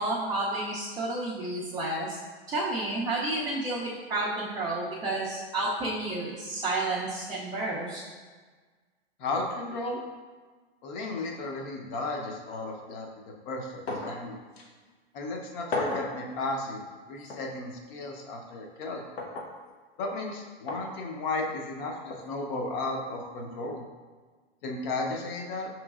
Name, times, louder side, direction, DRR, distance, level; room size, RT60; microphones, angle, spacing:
voice 1, 0.0-2.2 2.5-8.0, right 2 dB, 15° right, -6 dB, 0.4 m, -31 dB
voice 2, 9.2-10.0 10.8-14.4 15.1-19.0 20.0-23.8 24.6-25.7, left 2 dB, 50° left, 1 dB, 0.8 m, -34 dB
sound 1, 13.9-14.2 14.6-14.7 15.7-16.1 17.3-17.4 19.2-19.5 20.7-20.9 22.1-22.2, left 2 dB, 85° left, 0.8 m, -33 dB
5.1 x 3.1 x 2.4 m, 1.4 s
hypercardioid pair, 115°, 31 cm